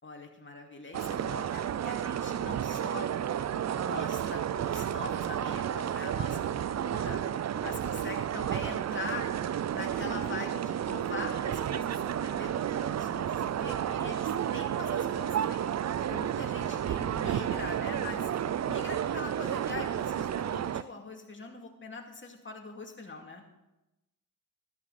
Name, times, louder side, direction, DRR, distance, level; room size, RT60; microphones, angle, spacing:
voice 1, 0.0-3.1 3.7-6.5 6.7-7.3 7.6-9.3 9.7-15.6 16.0-18.3 18.7-23.4, left 3 dB, 30° left, 2 dB, 2.6 m, -42 dB
sound 1, 0.9-20.8, right 9 dB, 50° right, 0.5 m, -31 dB
13.5 x 13.0 x 4.2 m, 0.95 s
cardioid pair, 85°, 36 cm